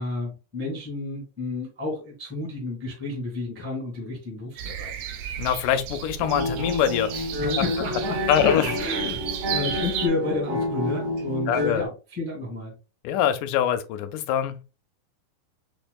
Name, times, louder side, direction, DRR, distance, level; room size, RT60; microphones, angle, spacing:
voice 1, 0.0-4.9 7.4-12.7, left 3 dB, 10° right, 0.8 m, -31 dB
sound 1, 4.6-10.1, right 8 dB, 80° right, 1.5 m, -33 dB
voice 2, 5.4-7.3 8.3-8.7 11.5-11.8 13.0-14.6, left 10 dB, 85° left, 2.0 m, -24 dB
sound 2, 6.1-11.9, left 1 dB, 55° right, 2.2 m, -29 dB
5.8 x 2.5 x 2.2 m
omnidirectional pair, 3.6 m